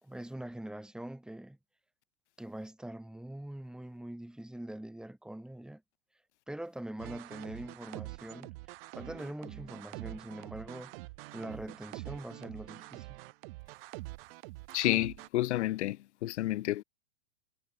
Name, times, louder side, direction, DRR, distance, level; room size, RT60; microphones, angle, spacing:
voice 1, 0.0-1.6 2.4-5.8 6.5-8.5 8.9-10.9 11.3-13.2, right 1 dB, ahead, 3.0 m, -43 dB
sound 1, 7.0-15.3, right 22 dB, 55° right, 6.2 m, -46 dB
voice 2, 14.7-16.8, left 15 dB, 70° left, 0.8 m, -30 dB
hypercardioid pair, 130°, 35 cm